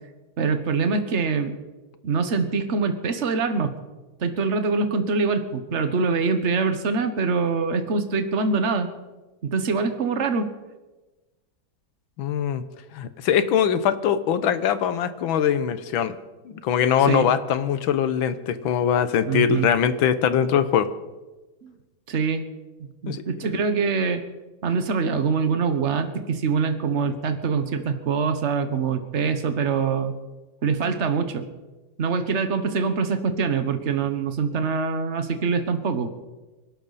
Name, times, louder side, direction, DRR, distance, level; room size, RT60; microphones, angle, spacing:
voice 1, 0.4-1.5 2.0-3.7 4.2-8.9 9.4-10.5 17.0-17.3 19.3-19.7 21.6-21.7 22.1-22.5 22.8-24.3 24.6-30.1 30.6-31.5 32.0-36.1, right 5 dB, 40° right, 8 dB, 1.4 m, -24 dB
voice 2, 12.2-12.6 12.9-16.1 16.4-20.9 23.1-23.2, left 8 dB, 80° left, 12 dB, 1.7 m, -22 dB
25.5 x 12.0 x 4.1 m, 1.2 s
omnidirectional pair, 2.2 m